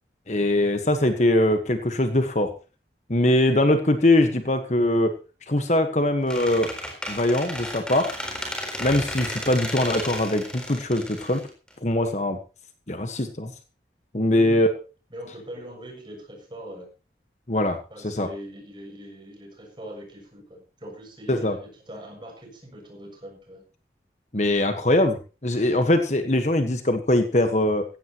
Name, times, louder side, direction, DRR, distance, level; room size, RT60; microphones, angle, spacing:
voice 1, 0.3-2.5 3.1-5.1 5.5-6.7 7.1-8.1 8.8-11.4 11.8-12.4 12.9-13.5 14.1-14.7 17.5-17.8 18.0-18.3 21.3-21.5 24.3-27.8, left 1 dB, 40° left, 7 dB, 1.4 m, -22 dB
Squeak, 6.3-12.1, equal, 5° left, 4.1 m, -33 dB
voice 2, 14.3-14.6 15.1-16.9 17.9-23.6, equal, 25° right, 2 dB, 7.0 m, -41 dB
16.0 x 16.0 x 3.1 m, 0.34 s
head